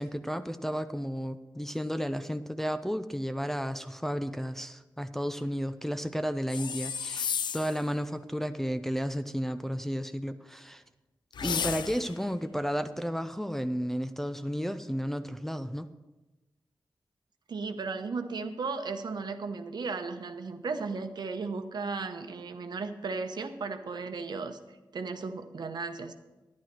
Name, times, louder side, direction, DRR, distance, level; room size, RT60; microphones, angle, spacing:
voice 1, 0.0-10.8 11.4-15.9, equal, 5° left, 9 dB, 0.4 m, -33 dB
sound 1, 6.5-7.8 11.3-12.2, left 7 dB, 75° left, 0.4 m, -33 dB
voice 2, 17.5-24.6 24.9-26.1, right 4 dB, 65° right, 7 dB, 0.9 m, -35 dB
11.5 x 10.5 x 4.6 m, 1.1 s
wide cardioid pair, 115°, 8 cm